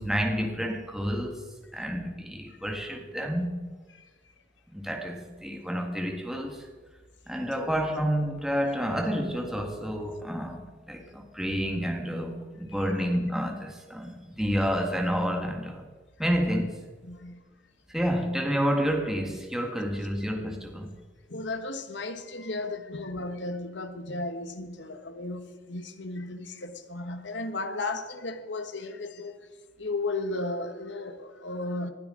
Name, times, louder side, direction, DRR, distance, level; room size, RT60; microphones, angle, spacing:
voice 1, 0.0-1.4 1.7-3.6 4.7-6.7 7.3-15.9 16.2-16.8 17.9-20.9, equal, 5° right, 1.7 m, -29 dB
voice 2, 17.0-17.4 21.3-29.4 29.8-31.9, left 2 dB, 70° left, 1.3 m, -35 dB
19.5 x 12.0 x 3.8 m
head